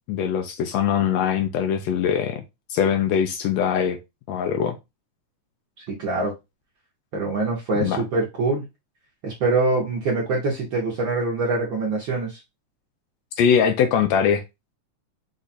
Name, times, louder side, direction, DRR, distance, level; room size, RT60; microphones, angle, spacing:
voice 1, 0.1-2.4 2.7-4.0 4.3-4.7 7.8-8.0 13.4-14.4, left 8 dB, 80° left, 1.6 m, -22 dB
voice 2, 5.8-6.3 7.1-8.6 9.2-12.4, right 3 dB, 60° right, 1.3 m, -24 dB
5.0 x 2.4 x 4.1 m
omnidirectional pair, 3.3 m